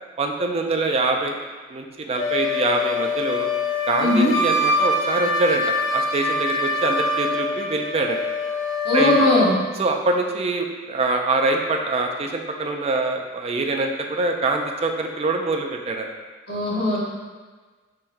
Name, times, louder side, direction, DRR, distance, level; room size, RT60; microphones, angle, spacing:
voice 1, 0.2-1.4 1.7-3.5 3.9-8.2 8.9-9.3 9.8-16.1, right 3 dB, 30° right, 3 dB, 0.3 m, -24 dB
Wind instrument woodwind instrument, 2.2-9.6, left 2 dB, 90° left, 0.6 m, -24 dB
voice 2, 4.0-4.3 8.8-9.5 16.5-17.0, left 1 dB, 55° left, -6 dB, 1.1 m, -19 dB
4.2 x 3.8 x 2.6 m, 1.4 s
head